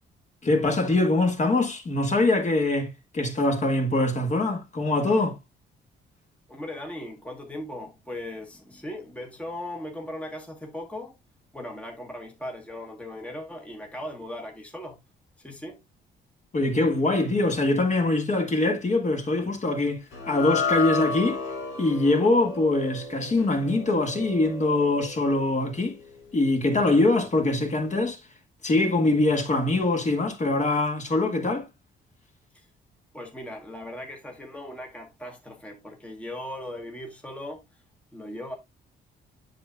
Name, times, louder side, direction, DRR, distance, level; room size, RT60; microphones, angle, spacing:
voice 1, 0.4-5.4 16.5-21.4 21.8-26.0 26.3-28.2 28.6-31.7, left 2 dB, 35° left, 1.6 m, -23 dB
voice 2, 6.5-11.2 11.5-15.0 15.4-15.8 32.5-32.7 33.1-37.6 38.1-38.6, left 1 dB, 5° left, 1.2 m, -38 dB
sound 1, 20.1-26.5, left 4 dB, 80° left, 3.3 m, -33 dB
7.6 x 6.4 x 2.2 m
cardioid pair, 90°, 20 cm